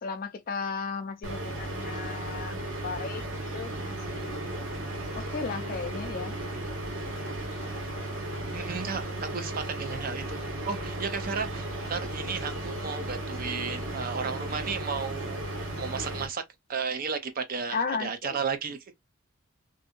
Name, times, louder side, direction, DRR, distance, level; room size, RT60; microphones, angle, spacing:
voice 1, 0.0-2.6 2.8-3.2 3.5-3.7 4.1-4.4 5.2-6.3 17.7-18.4, left 5 dB, 45° left, 0.4 m, -34 dB
sound 1, 1.2-16.3, right 1 dB, 80° right, 1.4 m, -35 dB
voice 2, 8.5-15.4 15.8-16.4 16.7-18.8, right 5 dB, 45° right, 0.5 m, -33 dB
2.7 x 2.6 x 2.3 m
head